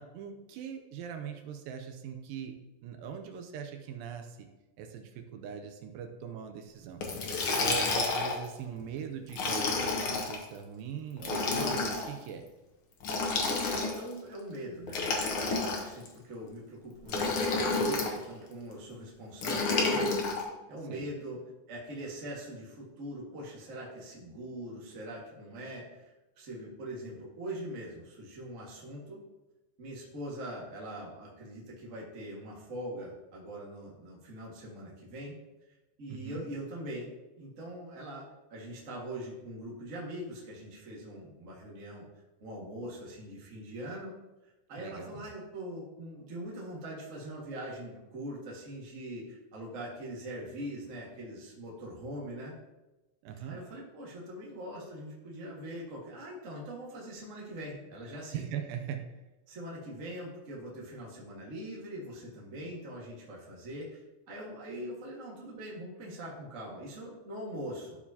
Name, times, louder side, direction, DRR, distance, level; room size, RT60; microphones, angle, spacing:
voice 1, 0.0-2.6 2.8-4.5 4.8-7.0 7.6-12.4 20.9-21.1 36.1-36.5 44.8-45.3 53.2-53.6 58.3-59.0, right 7 dB, 80° right, 5 dB, 2.3 m, -40 dB
Liquid, 7.0-8.4 9.3-10.4 11.2-12.1 13.0-14.1 14.9-16.1 17.1-18.1 19.4-20.4, left 3 dB, 85° left, 1.2 m, -30 dB
voice 2, 13.7-21.4 21.7-29.2 29.8-35.3 36.0-37.1 37.4-42.0 42.4-44.1 44.7-52.5 53.5-58.4 59.5-68.0, right 1 dB, 35° right, -4 dB, 1.3 m, -42 dB
13.0 x 4.7 x 2.8 m, 1.1 s
omnidirectional pair, 4.1 m